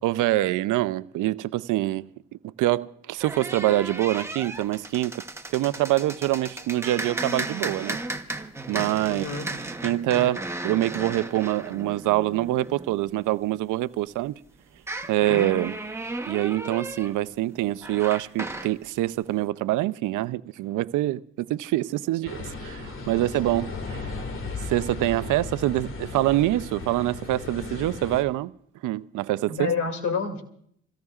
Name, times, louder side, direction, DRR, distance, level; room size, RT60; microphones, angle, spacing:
voice 1, 0.0-5.2 5.5-8.0 8.7-9.3 9.8-14.4 15.1-15.8 16.3-24.1 24.6-28.5 28.8-29.7, right 15 dB, 85° right, 0.6 m, -25 dB
sound 1, 3.2-13.6 14.8-18.8, right 2 dB, 10° right, 1.0 m, -35 dB
voice 2, 9.1-9.5 23.1-23.2 29.5-30.4, left 5 dB, 70° left, 2.6 m, -28 dB
sound 2, 22.3-28.2, left 3 dB, 45° left, 2.0 m, -36 dB
27.0 x 17.0 x 2.4 m
cardioid pair, 90°, 30 cm